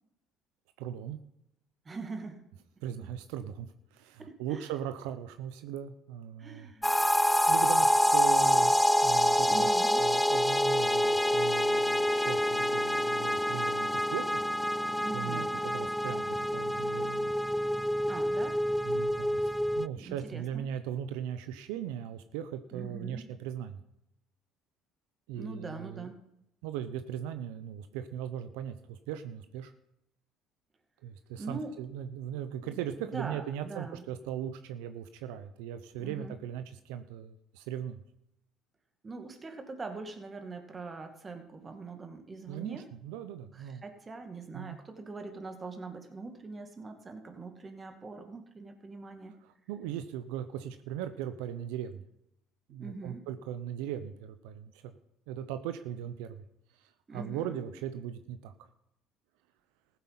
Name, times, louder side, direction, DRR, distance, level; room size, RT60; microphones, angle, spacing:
voice 1, 0.8-1.2 2.8-6.7 7.5-8.7 9.0-9.7 10.0-14.4 15.1-17.3 18.8-23.8 25.3-26.1 26.6-29.7 31.0-38.0 42.5-43.8 44.5-44.8 49.4-52.0 52.7-54.9 55.3-56.4 56.7-58.7, right 10 dB, 85° right, 10 dB, 0.7 m, -39 dB
voice 2, 1.8-2.4 4.2-4.7 6.4-6.9 9.5-10.0 15.0-15.6 18.1-18.6 19.9-20.7 22.7-23.3 25.3-26.2 31.4-31.7 32.6-34.0 36.0-36.3 39.0-42.9 43.5-49.4 52.7-53.2 57.1-57.6, right 3 dB, 30° right, 6 dB, 2.2 m, -42 dB
sound 1, 6.8-19.9, equal, 5° left, 0.4 m, -27 dB
15.0 x 8.2 x 5.8 m, 0.81 s
supercardioid pair, 85°, 0 cm